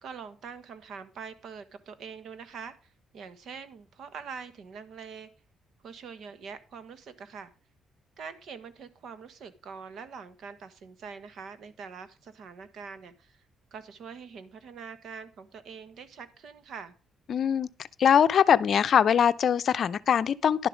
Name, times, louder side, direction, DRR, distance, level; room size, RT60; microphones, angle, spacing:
voice 1, 0.0-5.3 5.8-7.5 8.2-13.4 13.7-16.9, right 6 dB, 70° right, 1.3 m, -44 dB
voice 2, 17.3-17.7 18.0-20.7, left 8 dB, 55° left, 0.5 m, -22 dB
11.0 x 7.0 x 5.0 m
cardioid pair, 90°, 0 cm